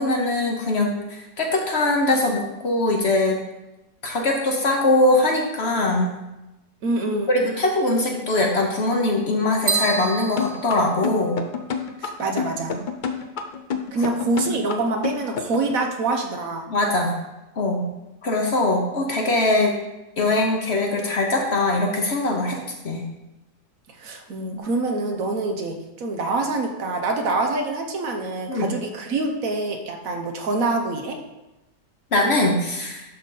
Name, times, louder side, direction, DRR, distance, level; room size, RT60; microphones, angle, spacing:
voice 1, 0.0-3.4 4.0-6.1 7.3-11.4 16.7-17.1 17.6-17.9 18.2-19.7 20.2-22.6 22.8-23.0 28.5-28.7 32.1-33.0, left 2 dB, 45° left, 1 dB, 1.1 m, -21 dB
voice 2, 6.8-7.3 12.0-12.7 13.9-16.6 24.0-31.2, right 3 dB, 65° right, 3 dB, 1.2 m, -25 dB
sound 1, 9.7-11.6, right 4 dB, 50° right, 1.4 m, -28 dB
sound 2, 10.4-15.7, left 6 dB, 75° left, 0.4 m, -28 dB
11.5 x 4.1 x 3.9 m, 0.97 s
omnidirectional pair, 1.7 m